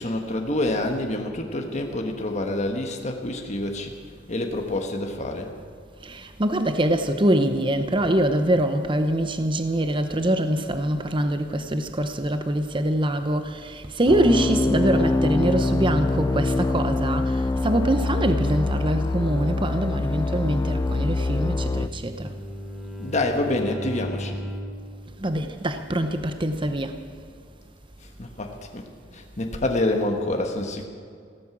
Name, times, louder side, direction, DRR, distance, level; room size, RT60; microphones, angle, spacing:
voice 1, 0.0-3.9 4.3-5.5 23.0-24.4 28.0-28.9 29.1-30.9, left 1 dB, 40° left, 3 dB, 1.5 m, -27 dB
voice 2, 6.0-22.3 25.2-27.0, right 1 dB, 25° right, 8 dB, 0.8 m, -24 dB
sound 1, 14.1-21.9, left 2 dB, 15° left, 0.3 m, -24 dB
Bowed string instrument, 21.3-24.9, equal, ahead, 1.2 m, -36 dB
16.5 x 13.5 x 6.2 m, 2.3 s
head